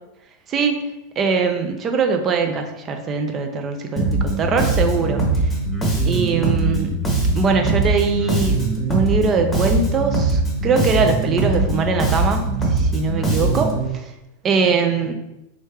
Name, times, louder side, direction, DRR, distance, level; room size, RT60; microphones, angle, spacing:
voice 1, 0.5-0.8 1.2-5.5 6.1-6.9 7.3-8.6 8.9-14.1 14.4-15.1, right 4 dB, 25° right, 4 dB, 0.5 m, -21 dB
Bass guitar, 4.0-13.8, right 2 dB, 15° left, 1.0 m, -21 dB
3.5 x 3.1 x 3.3 m, 0.92 s
figure-of-eight pair, 90°, 0 cm